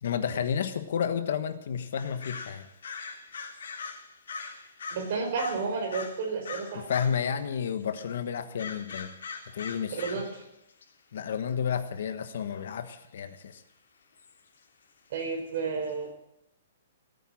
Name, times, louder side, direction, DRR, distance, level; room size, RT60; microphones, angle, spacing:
voice 1, 0.0-2.6 6.7-9.1 9.5-10.2 11.1-13.6, left 7 dB, 55° left, 10 dB, 1.3 m, -31 dB
sound 1, 2.0-7.3 7.6-8.0 8.6-10.4 10.7-10.8 12.5-12.7 13.4-13.5 14.2-14.4 15.2-15.3 15.5-15.6 15.9-16.0, left 5 dB, 85° left, 3.3 m, -41 dB
voice 2, 4.9-6.8 9.9-10.3 15.1-16.1, right 4 dB, 40° right, 3 dB, 4.3 m, -31 dB
18.0 x 9.3 x 7.6 m, 0.82 s
hypercardioid pair, 180°, 0 cm